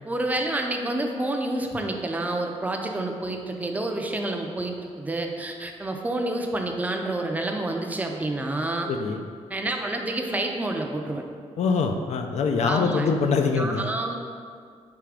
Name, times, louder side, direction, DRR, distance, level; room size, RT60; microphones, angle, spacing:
voice 1, 0.0-8.9 9.5-11.2 12.6-13.1 13.6-14.2, right 2 dB, 15° right, 3 dB, 0.4 m, -28 dB
voice 2, 8.9-9.2 11.6-13.9, left 4 dB, 70° left, 5 dB, 0.4 m, -24 dB
3.5 x 2.9 x 4.8 m, 2.1 s
cardioid pair, 115°, 12 cm